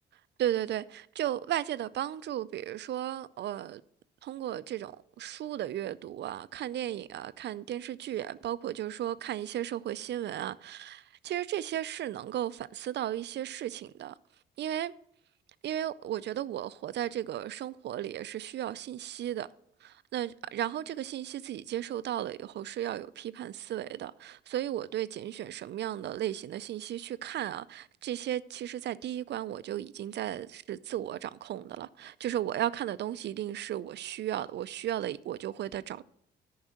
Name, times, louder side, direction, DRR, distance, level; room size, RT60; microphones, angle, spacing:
voice 1, 0.4-3.8 4.2-14.1 14.6-14.9 15.6-19.5 19.8-36.0, right 12 dB, 60° right, 0.4 m, -35 dB
9.5 x 5.5 x 6.4 m
cardioid pair, 90°, 20 cm